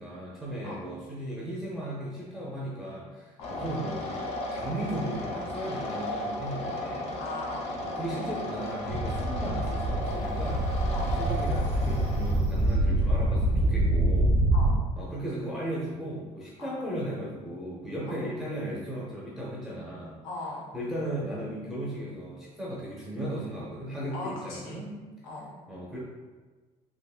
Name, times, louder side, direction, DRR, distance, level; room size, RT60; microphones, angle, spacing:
voice 1, 0.0-7.1 7.8-10.7 11.2-14.4 15.0-20.2 20.7-24.9 25.7-26.0, right 1 dB, ahead, -7 dB, 0.6 m, -36 dB
sound 1, 3.4-12.3, left 1 dB, 50° left, 0.5 m, -35 dB
voice 2, 7.2-7.7 10.9-11.1 14.5-14.7 16.6-16.7 18.1-18.2 20.2-20.6 24.1-24.9 25.2-25.5, left 2 dB, 80° left, -3 dB, 1.0 m, -39 dB
sound 2, 8.9-14.8, right 1 dB, 85° right, 0.9 m, -25 dB
sound 3, 10.4-13.5, right 5 dB, 65° right, 0.5 m, -46 dB
3.4 x 3.0 x 2.4 m, 1.3 s
cardioid pair, 160°, 13 cm